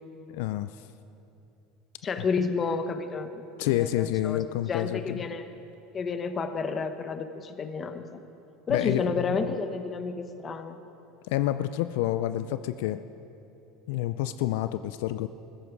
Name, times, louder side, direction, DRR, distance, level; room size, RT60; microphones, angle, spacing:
voice 1, 0.3-0.8 3.6-5.3 8.7-9.4 11.3-13.0 13.9-15.3, left 13 dB, 80° left, 12 dB, 0.4 m, -28 dB
voice 2, 2.0-4.4 4.7-5.4 5.9-8.2 8.7-10.8, left 4 dB, 30° left, 9 dB, 0.9 m, -31 dB
15.0 x 14.5 x 4.8 m, 2.8 s
supercardioid pair, 125°, 0 cm